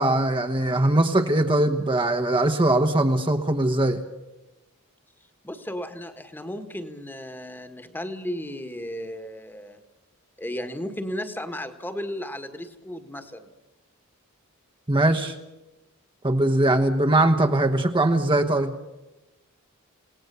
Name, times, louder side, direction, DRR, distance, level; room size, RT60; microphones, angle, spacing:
voice 1, 0.0-4.0 14.9-15.3 16.2-18.7, right 1 dB, 25° right, 4 dB, 1.2 m, -21 dB
voice 2, 5.4-9.8 10.4-13.5, equal, 10° left, 8 dB, 1.7 m, -34 dB
29.0 x 18.5 x 6.9 m, 1.0 s
head